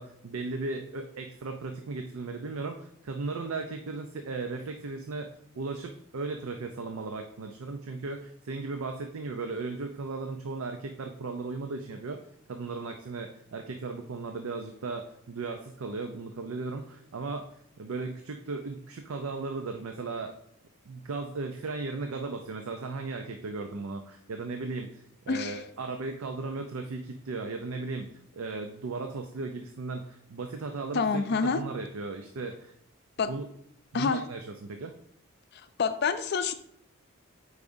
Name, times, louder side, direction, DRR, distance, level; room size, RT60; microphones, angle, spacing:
voice 1, 0.0-5.3 5.6-12.2 12.5-17.5 17.8-20.3 20.9-32.8 33.3-33.5 33.9-34.9, right 3 dB, 75° right, 5 dB, 0.5 m, -36 dB
voice 2, 25.3-25.6 30.9-31.6 33.2-33.3 33.9-34.2 35.8-36.5, left 5 dB, 50° left, 11 dB, 0.4 m, -27 dB
8.3 x 4.8 x 2.6 m, 0.73 s
head